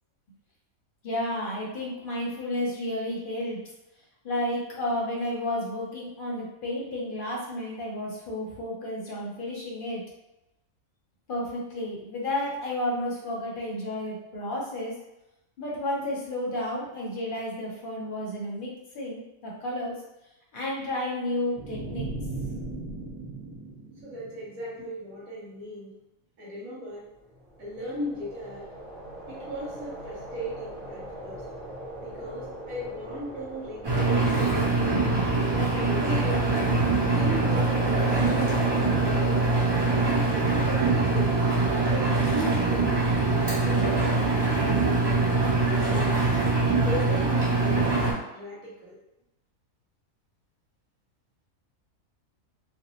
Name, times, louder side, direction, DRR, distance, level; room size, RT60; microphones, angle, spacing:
voice 1, 1.0-3.6 4.2-10.1 11.3-15.0 15.6-20.0 20.5-22.1, left 1 dB, 50° left, -4 dB, 0.7 m, -32 dB
sound 1, 21.6-24.8, right 2 dB, 10° right, 1.0 m, -37 dB
voice 2, 24.0-25.9 26.4-27.1 27.6-28.7 29.3-31.4 32.0-35.0 35.5-36.6 37.1-38.6 39.0-39.6 40.0-41.5 41.8-43.0 43.2-43.8 44.2-46.3 46.8-49.0, equal, 85° right, -6 dB, 1.2 m, -37 dB
sound 2, 27.3-44.2, right 1 dB, 45° right, 1.0 m, -40 dB
Engine, 33.8-48.1, right 3 dB, 30° right, 0.5 m, -23 dB
2.6 x 2.1 x 2.9 m, 0.93 s
omnidirectional pair, 1.4 m